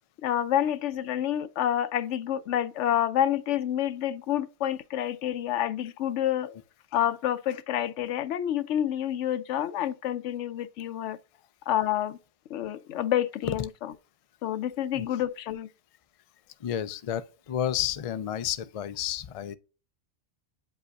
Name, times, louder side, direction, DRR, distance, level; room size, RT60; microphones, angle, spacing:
voice 1, 0.2-6.5 6.9-11.2 11.7-12.2 12.5-13.7 14.4-15.7, left 11 dB, 90° left, 0.9 m, -28 dB
voice 2, 16.6-19.5, left 10 dB, 55° left, 0.3 m, -31 dB
8.0 x 5.3 x 2.4 m
omnidirectional pair, 1.2 m